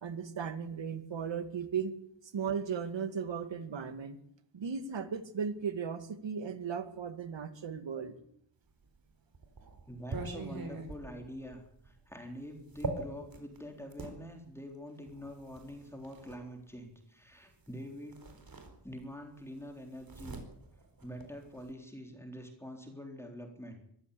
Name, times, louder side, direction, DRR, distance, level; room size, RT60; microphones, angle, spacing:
voice 1, 0.0-1.9 2.2-4.2 4.5-8.2, right 6 dB, 85° right, 10 dB, 2.3 m, -36 dB
sound 1, 8.8-14.2 15.1-16.4 17.6-17.8 18.1-19.2 19.5-21.7, right 3 dB, 50° right, 4.4 m, -43 dB
voice 2, 9.9-18.2 18.8-20.4 21.0-23.8, equal, 5° left, 3 dB, 3.9 m, -46 dB
24.0 x 14.0 x 8.5 m, 0.69 s
wide cardioid pair, 170°, 44 cm